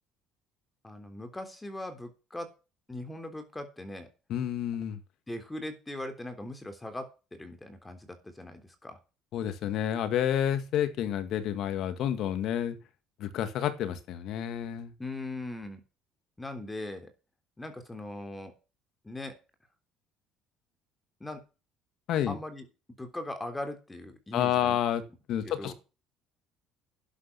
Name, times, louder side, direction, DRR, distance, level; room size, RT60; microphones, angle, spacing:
voice 1, 0.8-2.5 2.9-4.1 5.3-9.0 15.0-15.8 16.4-17.1 17.6-18.5 19.0-19.4 21.2-21.4 22.3-22.7 23.0-24.8 25.4-25.7, left 1 dB, 10° left, 8 dB, 3.5 m, -40 dB
voice 2, 4.3-5.0 9.3-12.8 13.2-14.9 22.1-22.4 24.3-25.0 25.3-25.7, left 10 dB, 60° left, 11 dB, 2.3 m, -29 dB
11.5 x 9.0 x 6.1 m, 0.31 s
cardioid pair, 110°, 0 cm